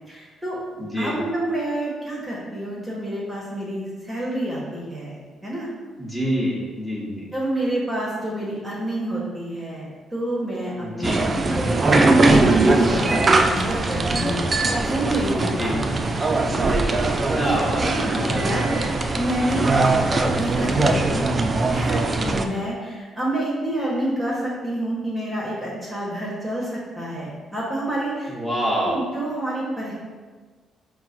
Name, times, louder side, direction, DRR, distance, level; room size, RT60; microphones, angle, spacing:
voice 1, 0.1-0.6 0.9-5.7 7.3-14.4 14.8-16.8 17.4-18.8 19.1-19.7 20.1-21.3 21.7-28.3 28.8-29.9, right 1 dB, 10° right, -6 dB, 1.0 m, -28 dB
voice 2, 0.8-1.1 6.0-7.3 10.8-11.2 15.6-15.8 17.2-17.9 18.3-18.8 28.3-29.0, equal, 20° left, -6 dB, 1.3 m, -26 dB
sound 1, 11.0-22.4, right 2 dB, 35° right, 0.3 m, -20 dB
4.4 x 2.1 x 4.3 m, 1.4 s
cardioid pair, 90°, 0 cm